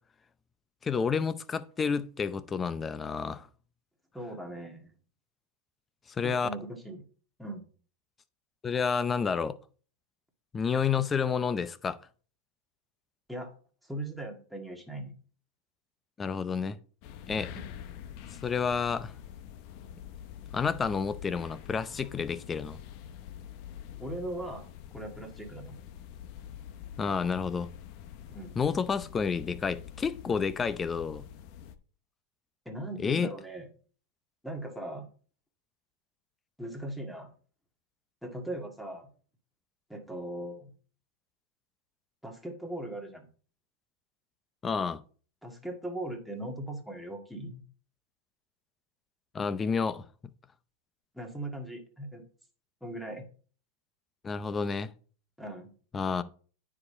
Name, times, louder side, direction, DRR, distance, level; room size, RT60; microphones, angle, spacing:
voice 1, 0.8-3.5 6.2-6.5 8.6-9.6 10.5-12.0 16.2-16.8 17.3-17.5 18.4-19.1 20.5-22.8 27.0-27.7 28.6-31.2 33.0-33.3 44.6-45.0 49.3-50.0 54.2-54.9 55.9-56.2, left 6 dB, 20° left, 0.6 m, -30 dB
voice 2, 4.1-4.9 6.2-7.0 7.4-7.6 13.3-13.5 13.8-15.1 17.5-17.6 24.0-24.7 24.9-25.8 28.3-28.5 32.6-33.7 34.4-35.1 36.6-37.3 38.2-39.1 39.9-40.7 42.2-43.3 45.4-47.6 51.1-52.2 52.8-53.2 55.4-55.7, right 1 dB, ahead, 1.8 m, -39 dB
sound 1, 17.0-31.8, left 9 dB, 50° left, 0.8 m, -46 dB
9.6 x 4.9 x 4.3 m
hypercardioid pair, 125°, 0 cm